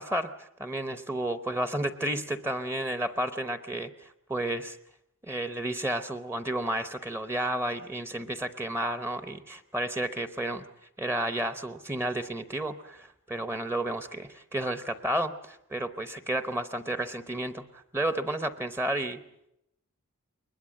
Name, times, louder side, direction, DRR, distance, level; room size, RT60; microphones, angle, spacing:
voice 1, 0.0-4.8 5.2-10.6 11.0-19.2, right 1 dB, 10° right, 10 dB, 0.8 m, -32 dB
22.0 x 20.5 x 7.7 m, 0.81 s
head